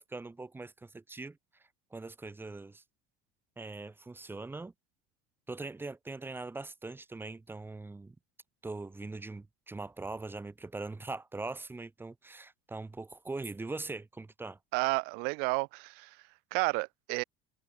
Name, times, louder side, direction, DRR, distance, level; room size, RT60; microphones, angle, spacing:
voice 1, 0.0-1.4 1.9-2.8 3.6-4.7 5.5-8.1 8.6-14.6, right 3 dB, 15° right, 1.6 m, -41 dB
voice 2, 14.7-16.2 16.5-17.2, right 32 dB, 70° right, 0.7 m, -31 dB
supercardioid pair, 95°, 17 cm